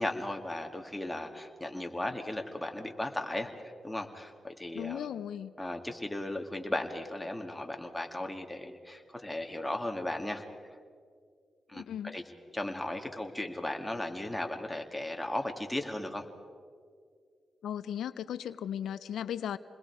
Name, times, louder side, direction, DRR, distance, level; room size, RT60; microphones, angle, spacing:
voice 1, 0.0-3.5 3.8-5.0 5.6-10.4 11.7-11.9 12.1-12.2 12.5-16.2, left 1 dB, 10° left, 3 dB, 2.4 m, -36 dB
voice 2, 4.7-5.6 11.7-12.2 17.6-19.6, left 10 dB, 90° left, 14 dB, 0.5 m, -36 dB
28.0 x 21.0 x 4.8 m, 2.1 s
cardioid pair, 65°, 0 cm